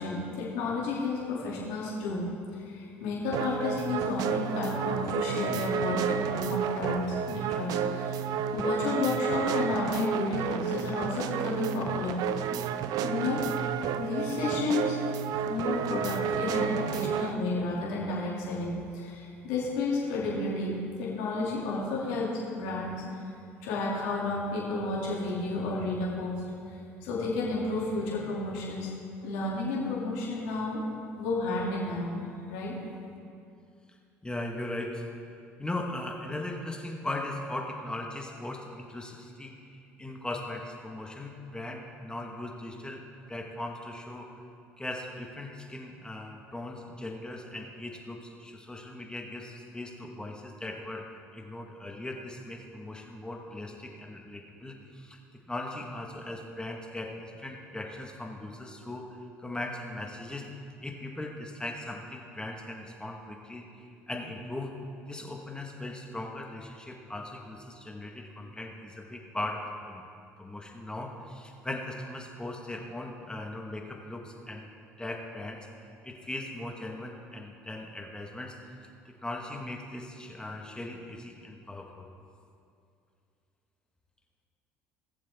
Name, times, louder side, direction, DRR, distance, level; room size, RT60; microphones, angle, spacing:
voice 1, 0.0-2.2 2.5-8.2 8.5-12.5 13.0-13.4 14.0-15.0 15.4-23.2 23.6-26.4 27.0-28.9 29.2-30.8 31.2-32.2 32.5-32.8, left 3 dB, 80° left, -6 dB, 2.6 m, -31 dB
sound 1, 3.3-17.3, right 8 dB, 65° right, 0.5 m, -31 dB
voice 2, 34.2-35.0 35.6-44.3 44.8-55.2 55.5-60.5 60.8-64.7 65.1-70.1 70.4-74.7 75.0-75.7 76.0-78.6 79.2-82.1, left 1 dB, 10° left, 1 dB, 1.5 m, -39 dB
19.5 x 7.2 x 3.6 m, 2.5 s
hypercardioid pair, 70°, 7 cm